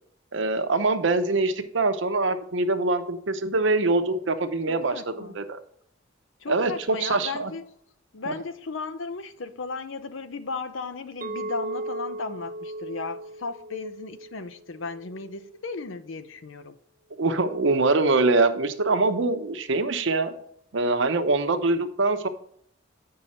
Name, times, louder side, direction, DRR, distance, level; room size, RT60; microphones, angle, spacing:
voice 1, 0.3-5.6 6.5-7.5 8.3-8.4 17.2-20.3 20.7-22.3, right 3 dB, 70° right, 0.8 m, -24 dB
voice 2, 4.7-5.4 6.4-7.6 8.1-16.7, left 4 dB, 80° left, 0.7 m, -35 dB
Chink clink, 11.2-15.5, right 2 dB, 40° right, 0.6 m, -37 dB
8.7 x 5.5 x 4.3 m
head